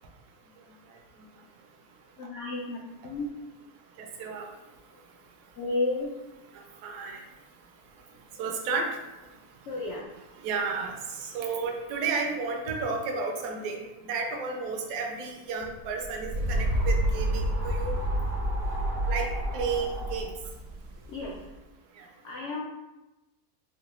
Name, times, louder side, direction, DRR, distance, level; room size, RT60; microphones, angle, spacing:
voice 1, 2.2-3.3 5.6-6.1 9.7-10.1 21.1-21.4 22.2-22.6, left 2 dB, 75° left, -3 dB, 0.6 m, -32 dB
voice 2, 4.0-4.5 6.8-7.2 8.4-8.9 10.4-17.9 19.0-20.3 22.0-22.1, right 4 dB, 75° right, 1 dB, 1.1 m, -32 dB
sound 1, 15.8-21.4, right 1 dB, 60° right, 0.7 m, -29 dB
4.7 x 2.2 x 3.0 m, 1.0 s
omnidirectional pair, 1.8 m